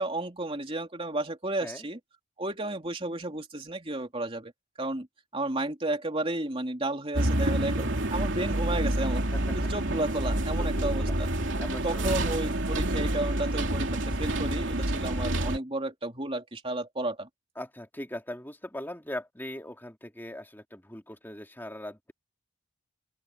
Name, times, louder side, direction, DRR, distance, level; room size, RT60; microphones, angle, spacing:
voice 1, 0.0-2.0 2.4-4.5 4.8-5.1 5.3-9.3 9.5-11.3 11.8-17.3, right 2 dB, 25° right, 3.2 m, -32 dB
Bus Arrive Suburban Street Get On Doors Close Pull Away, 7.1-15.6, right 1 dB, 60° right, 3.2 m, -28 dB
voice 2, 9.3-9.7 10.6-11.1 11.6-12.6 17.6-22.1, left 1 dB, 10° left, 2.7 m, -40 dB
open air
head